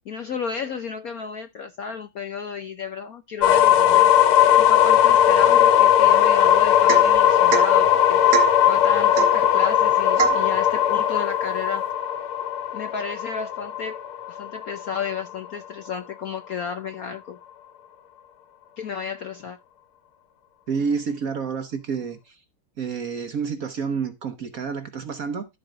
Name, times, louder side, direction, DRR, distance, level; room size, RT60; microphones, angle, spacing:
voice 1, 0.1-4.1 4.6-11.8 12.7-17.4 18.8-19.6, left 6 dB, 65° left, 0.9 m, -33 dB
sound 1, 3.4-15.2, left 11 dB, 80° left, 1.8 m, -18 dB
Domestic sounds home sounds / Chink clink / Drip, 6.9-7.2 7.5-7.7 8.3-8.6 9.2-9.4 10.2-10.5, right 12 dB, 70° right, 1.8 m, -24 dB
voice 2, 20.7-22.4 22.8-25.5, right 6 dB, 50° right, 1.2 m, -29 dB
13.5 x 4.7 x 3.8 m
omnidirectional pair, 2.3 m